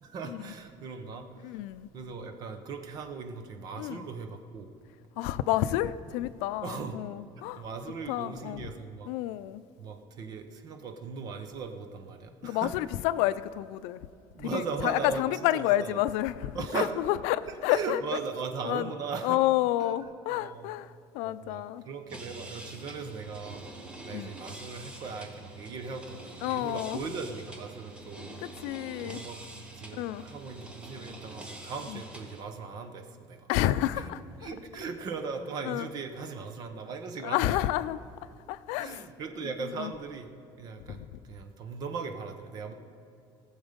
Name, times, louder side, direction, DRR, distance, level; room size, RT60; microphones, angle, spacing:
voice 1, 0.0-1.6 1.9-4.7 5.3-5.5 6.6-7.0 7.4-9.1 9.8-12.7 14.3-16.0 16.5-16.9 17.7-19.4 19.8-19.9 20.3-20.7 21.2-23.7 24.0-28.4 29.0-29.4 29.8-33.5 33.9-34.0 34.4-37.6 38.7-40.3 40.6-42.7, right 5 dB, 40° right, 0.9 m, -38 dB
voice 2, 1.4-1.9 3.8-4.0 5.2-7.6 8.1-8.7 9.1-9.6 12.4-14.0 14.4-18.0 18.6-18.9 19.2-21.8 24.1-24.3 26.4-27.0 28.4-29.2 29.9-30.2 31.9-32.0 33.5-34.5 35.6-35.9 37.2-38.0 38.5-39.1 39.8-39.9 40.9-41.1, left 14 dB, 90° left, 0.4 m, -30 dB
sound 1, 22.1-32.4, right 2 dB, 10° right, 1.0 m, -46 dB
19.0 x 7.2 x 5.2 m
cardioid pair, 180°, 11 cm